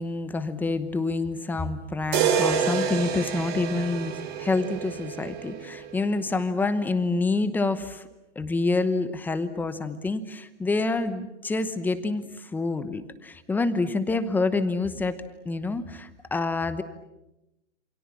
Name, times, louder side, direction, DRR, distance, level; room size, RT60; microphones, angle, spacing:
voice 1, 0.0-8.0 8.3-15.2 15.4-16.8, left 3 dB, 5° left, 11 dB, 1.0 m, -27 dB
sound 1, 2.1-6.2, right 7 dB, 30° right, 3.7 m, -28 dB
28.5 x 27.5 x 7.5 m, 0.93 s
hypercardioid pair, 155°, 36 cm